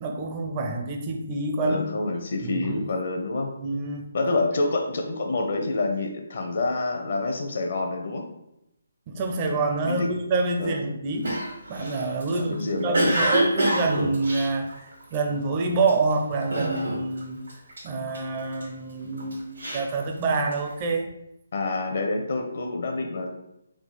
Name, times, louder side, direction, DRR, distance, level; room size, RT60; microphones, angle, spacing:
voice 1, 0.0-1.8 2.4-2.8 3.6-4.1 9.1-11.3 11.7-17.4 17.8-21.1, right 3 dB, 30° right, 3 dB, 0.5 m, -27 dB
voice 2, 1.6-3.5 4.1-8.3 9.8-10.1 10.6-10.8 12.3-13.2 21.5-23.3, left 2 dB, 55° left, 3 dB, 0.7 m, -27 dB
Cough, 11.2-15.3 15.8-16.1 16.5-17.2 17.5-18.7 19.2-20.7, right 1 dB, 80° right, 1.5 m, -26 dB
3.6 x 2.3 x 4.0 m, 0.85 s
figure-of-eight pair, 155°, 0 cm